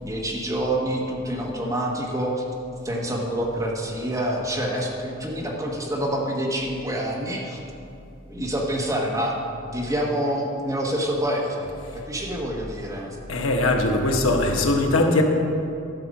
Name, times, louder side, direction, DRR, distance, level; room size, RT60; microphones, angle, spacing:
voice 1, 0.0-2.4 2.8-7.6 8.3-9.4 9.7-13.2, right 1 dB, 15° right, -2 dB, 1.3 m, -27 dB
voice 2, 13.3-15.2, left 2 dB, 85° left, 2 dB, 1.2 m, -20 dB
11.5 x 6.9 x 5.4 m, 2.6 s
head